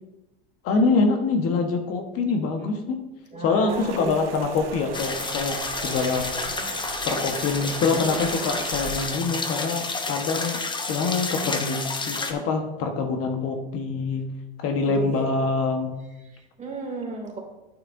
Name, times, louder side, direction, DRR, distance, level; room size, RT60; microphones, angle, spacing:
voice 1, 0.6-3.0 3.4-6.2 7.0-10.6 10.9-14.3 14.6-16.0, left 4 dB, 50° left, 4 dB, 1.3 m, -25 dB
voice 2, 3.3-4.4 6.3-6.7 7.1-7.2 14.8-15.3 16.2-17.4, right 3 dB, 25° right, 1 dB, 2.5 m, -35 dB
Rain, 3.7-9.1, right 5 dB, 80° right, 1.3 m, -38 dB
sound 1, 4.9-12.3, left 3 dB, 15° left, 1.0 m, -30 dB
9.2 x 8.7 x 2.7 m, 1.0 s
hypercardioid pair, 95°, 29 cm